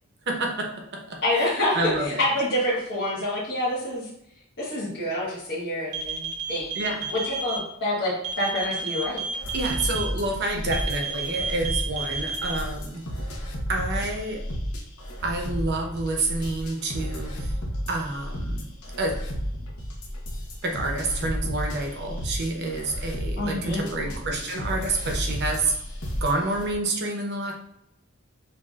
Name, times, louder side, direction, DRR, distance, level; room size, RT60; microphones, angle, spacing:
voice 1, 0.3-1.2 1.7-2.2 6.7-7.1 9.5-13.0 13.7-14.4 15.2-17.5 17.9-18.7 19.0-19.2 20.6-25.7 26.2-27.5, right 2 dB, 55° right, 2 dB, 0.9 m, -28 dB
voice 2, 1.2-4.1 4.6-6.7 7.1-9.2 23.4-23.8, left 1 dB, 50° left, -10 dB, 1.4 m, -27 dB
sound 1, 5.9-7.6 8.2-10.0 10.7-12.5, right 5 dB, 75° right, 0.9 m, -31 dB
sound 2, 9.4-26.8, equal, 75° left, 1.0 m, -32 dB
6.9 x 2.7 x 2.4 m, 0.77 s
head